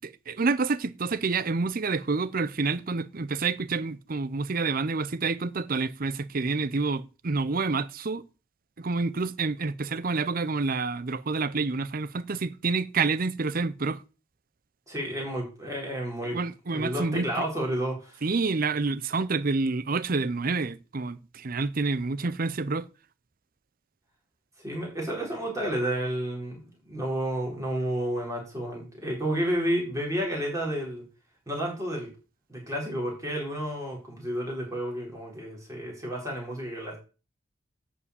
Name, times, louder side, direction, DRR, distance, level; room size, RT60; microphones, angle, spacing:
voice 1, 0.0-8.2 8.8-14.0 16.3-17.3 18.2-22.9, right 4 dB, 45° right, 0.6 m, -28 dB
voice 2, 14.9-16.4 16.7-18.2 24.6-31.0 31.5-32.1 32.5-37.0, right 1 dB, 15° right, 4.3 m, -31 dB
11.0 x 5.0 x 8.2 m
head